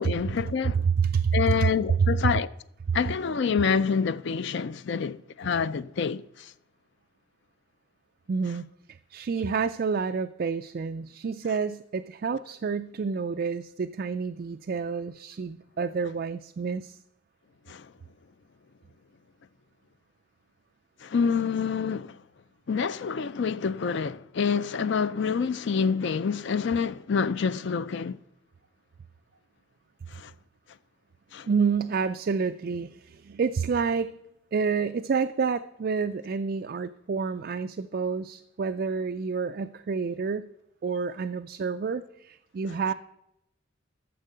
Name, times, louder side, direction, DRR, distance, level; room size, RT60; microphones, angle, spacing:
voice 1, 0.0-0.9 1.3-2.5 2.9-6.5 17.7-17.9 21.0-22.2 22.7-28.2 30.1-30.3 31.3-31.5, left 6 dB, 55° left, 0.4 m, -27 dB
voice 2, 0.8-1.7 2.0-2.3 8.3-17.0 31.5-34.1 34.5-40.4 40.8-42.9, right 5 dB, 45° right, 0.3 m, -28 dB
12.5 x 7.4 x 6.7 m
head